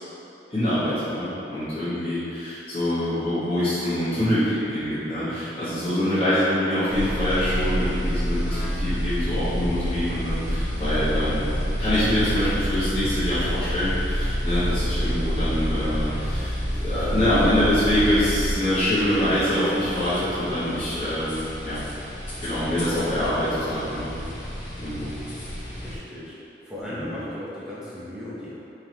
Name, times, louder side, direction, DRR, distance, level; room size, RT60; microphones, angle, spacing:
voice 1, 0.5-11.5 11.8-16.6 16.8-21.8 22.4-24.1 24.8-25.1 26.8-27.1, left 1 dB, 35° left, -14 dB, 1.4 m, -25 dB
sound 1, 6.9-26.0, equal, 50° left, 1.0 m, -28 dB
voice 2, 25.8-26.3 26.6-28.6, left 1 dB, 5° right, -11 dB, 0.8 m, -36 dB
4.7 x 3.7 x 2.9 m, 2.8 s
head